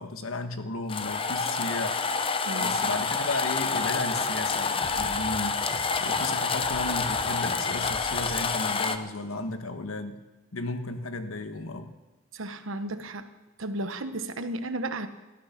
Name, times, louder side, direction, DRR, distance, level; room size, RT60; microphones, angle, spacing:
voice 1, 0.0-2.0 2.6-5.7 6.0-10.3 10.5-11.9, left 2 dB, 80° left, 7 dB, 1.4 m, -34 dB
sound 1, 0.9-9.0, left 4 dB, 25° left, 0.7 m, -28 dB
voice 2, 2.4-2.9 12.3-13.3 13.6-15.1, right 1 dB, 70° right, 9 dB, 1.2 m, -34 dB
sound 2, 2.7-8.1, right 1 dB, 10° right, 1.6 m, -50 dB
sound 3, 3.9-9.4, equal, 45° left, 6.0 m, -46 dB
18.0 x 13.0 x 5.9 m, 1.1 s
head